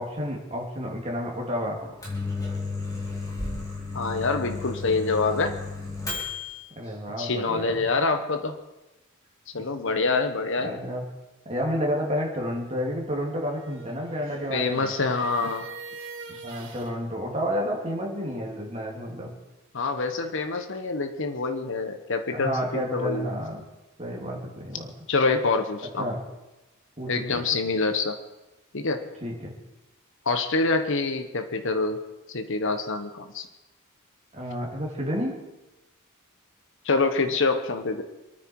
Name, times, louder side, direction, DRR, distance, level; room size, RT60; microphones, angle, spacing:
voice 1, 0.0-1.8 6.7-7.9 9.6-9.7 10.6-11.0 11.4-14.9 16.3-19.4 22.3-23.6 24.0-24.9 26.0-26.2 27.0-27.4 29.2-29.6 34.3-35.4, equal, 30° right, -1 dB, 2.9 m, -30 dB
Microwave oven, 1.8-6.6, left 3 dB, 15° left, 3.8 m, -33 dB
voice 2, 3.9-5.6 7.2-8.6 9.5-10.8 14.5-15.7 19.7-23.3 25.1-26.1 27.1-28.2 28.7-29.1 30.2-32.0 32.3-33.5 36.8-38.0, left 3 dB, 60° left, 7 dB, 1.1 m, -26 dB
sound 1, 13.3-16.9, right 4 dB, 60° right, 3.3 m, -42 dB
26.5 x 9.5 x 4.7 m, 1.0 s
head